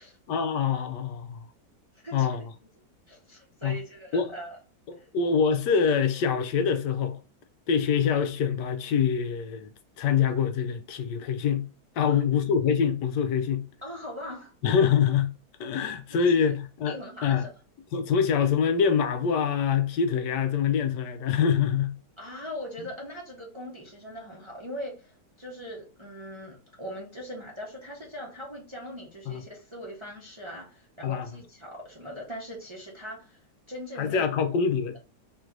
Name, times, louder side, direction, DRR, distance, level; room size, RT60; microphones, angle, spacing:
voice 1, 0.3-1.4 2.1-2.5 3.6-3.8 4.1-4.3 4.9-7.2 7.7-9.7 10.0-11.6 12.0-13.6 14.6-15.3 15.6-17.4 17.9-21.9 29.3-29.4 31.0-31.3 34.0-35.0, left 7 dB, 80° left, 1.2 m, -25 dB
voice 2, 2.0-2.5 3.1-4.6 5.0-5.1 12.0-12.2 13.8-14.5 16.8-17.5 22.2-33.4 33.7-34.2, equal, 25° right, 0.7 m, -40 dB
3.1 x 2.6 x 4.4 m
omnidirectional pair, 1.8 m